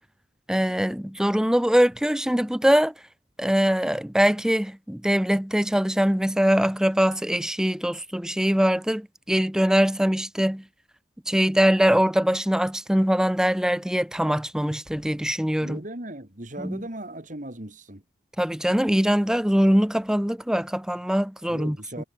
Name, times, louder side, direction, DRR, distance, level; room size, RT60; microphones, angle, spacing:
voice 1, 0.5-2.9 3.4-10.6 11.3-15.8 16.6-16.8 18.4-22.0, equal, 5° right, 0.5 m, -22 dB
voice 2, 15.6-18.0 21.5-22.0, right 1 dB, 45° right, 3.0 m, -37 dB
head